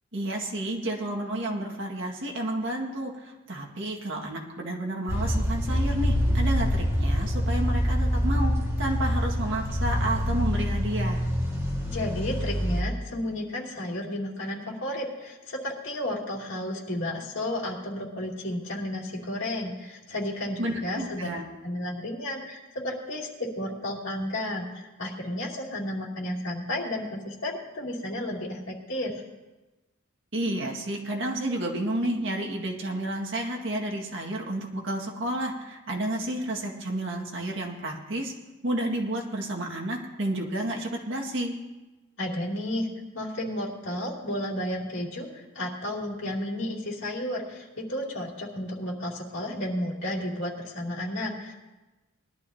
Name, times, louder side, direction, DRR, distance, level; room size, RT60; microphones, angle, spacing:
voice 1, 0.1-8.5 8.8-11.2 20.6-21.4 30.3-38.3 38.6-41.6, right 1 dB, 60° right, 0 dB, 1.9 m, -31 dB
sound 1, 5.1-12.8, equal, 15° right, 1.8 m, -26 dB
voice 2, 11.8-21.3 21.6-29.2 42.2-42.9 43.1-51.5, left 1 dB, 60° left, -5 dB, 2.7 m, -32 dB
19.5 x 12.0 x 2.8 m, 1.1 s
head